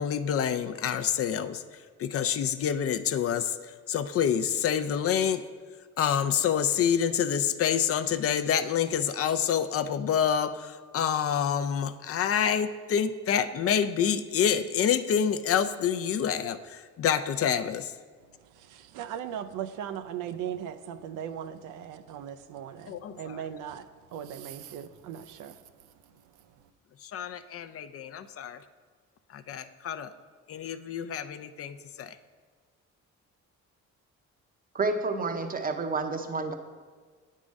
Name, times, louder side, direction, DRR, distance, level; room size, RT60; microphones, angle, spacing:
voice 1, 0.0-1.6 2.0-5.4 6.0-17.9 22.9-23.4 27.0-28.6 29.3-30.1 30.5-32.1, left 8 dB, 50° left, 11 dB, 0.4 m, -27 dB
voice 2, 18.9-23.8 24.1-25.5, right 9 dB, 90° right, 11 dB, 0.5 m, -38 dB
voice 3, 34.7-36.5, right 3 dB, 30° right, 7 dB, 0.6 m, -29 dB
8.5 x 3.7 x 5.1 m, 1.5 s
cardioid pair, 90°, 30 cm